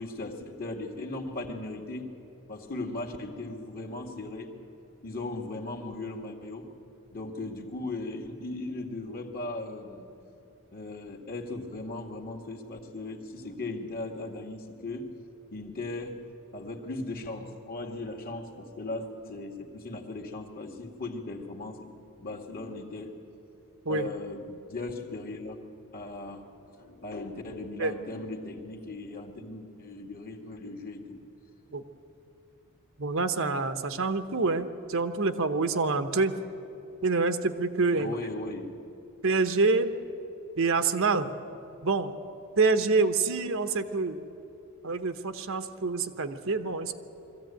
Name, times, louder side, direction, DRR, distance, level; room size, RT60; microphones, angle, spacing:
voice 1, 0.0-2.1 2.5-4.7 5.0-6.7 7.1-10.1 10.7-15.1 15.5-16.3 16.5-21.9 22.2-23.3 23.9-31.2 37.9-38.8, left 2 dB, 40° left, 2 dB, 2.0 m, -38 dB
voice 2, 33.0-36.3 37.0-38.2 39.2-39.9 40.6-41.3 41.8-42.1 42.5-44.2 44.8-46.9, right 3 dB, 60° right, 8 dB, 1.0 m, -26 dB
22.0 x 15.0 x 9.1 m, 2.9 s
head